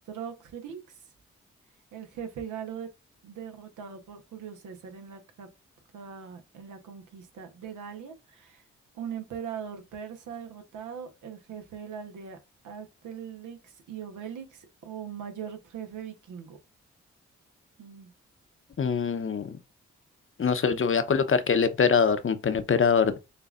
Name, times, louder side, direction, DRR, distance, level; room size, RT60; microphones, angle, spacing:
voice 1, 0.1-0.8 1.9-2.9 3.2-5.5 5.9-8.6 8.9-12.4 12.6-16.6 17.8-18.1, right 8 dB, 85° right, 1.0 m, -40 dB
voice 2, 18.8-19.6 20.4-23.1, left 6 dB, 45° left, 0.8 m, -23 dB
6.6 x 2.5 x 2.5 m
supercardioid pair, 40°, 30 cm